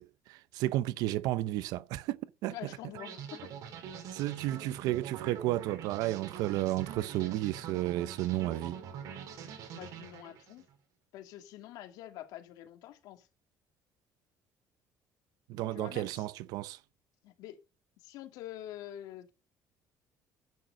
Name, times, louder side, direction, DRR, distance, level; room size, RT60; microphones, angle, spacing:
voice 1, 0.0-2.8 4.1-8.8 15.5-16.8, right 15 dB, 90° right, 0.7 m, -33 dB
voice 2, 2.5-3.5 9.4-10.7 11.1-13.3 15.7-16.3 17.2-17.6 18.0-19.3, left 13 dB, 80° left, 2.4 m, -46 dB
sound 1, 3.0-10.6, right 8 dB, 65° right, 3.1 m, -44 dB
10.5 x 9.1 x 6.3 m
cardioid pair, 160°, 6 cm